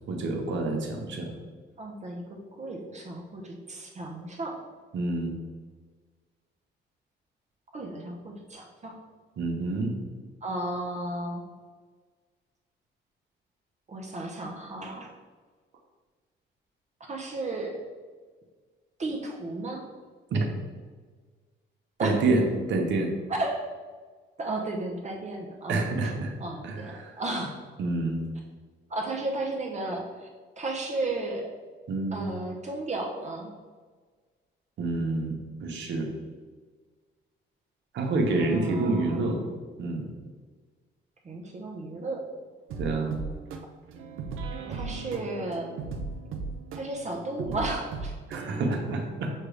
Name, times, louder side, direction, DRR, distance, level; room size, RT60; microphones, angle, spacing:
voice 1, 0.1-1.3 4.9-5.3 9.4-9.9 20.3-20.5 22.0-22.4 22.7-23.1 25.7-26.3 26.6-27.2 27.8-28.2 31.9-32.3 34.8-35.3 35.6-36.1 37.9-39.4 39.8-40.1 42.8-43.2 48.3-49.3, right 3 dB, 70° right, 2 dB, 0.9 m, -27 dB
voice 2, 1.8-4.6 7.7-9.0 10.4-11.4 13.9-15.1 17.0-17.8 19.0-19.8 22.0-22.3 23.3-23.7 24.4-26.1 26.4-27.6 28.9-30.3 30.6-31.5 32.1-33.5 38.3-39.4 41.2-42.3 44.7-45.7 46.7-48.1, right 2 dB, 35° right, 0 dB, 0.7 m, -34 dB
sound 1, 42.7-48.8, right 4 dB, 85° right, 0.6 m, -37 dB
6.5 x 2.4 x 3.3 m, 1.5 s
cardioid pair, 90°, 20 cm